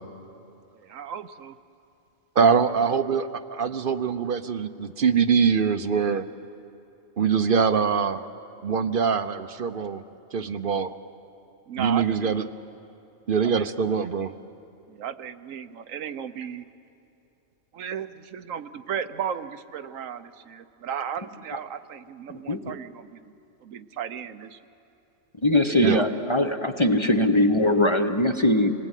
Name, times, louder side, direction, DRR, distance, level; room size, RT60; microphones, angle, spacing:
voice 1, 0.7-1.6 2.5-2.8 11.7-12.5 13.4-13.7 14.9-16.7 17.7-23.3 23.6-24.6 25.7-26.1, right 8 dB, 85° right, 11 dB, 1.2 m, -35 dB
voice 2, 2.4-6.3 7.2-8.3 8.6-10.0 10.3-10.9 11.8-12.4 13.3-14.3 25.8-26.0, right 6 dB, 50° right, 11 dB, 0.8 m, -23 dB
voice 3, 25.4-28.7, left 1 dB, 25° left, 6 dB, 0.9 m, -21 dB
28.0 x 19.5 x 9.1 m, 2.9 s
omnidirectional pair, 1.3 m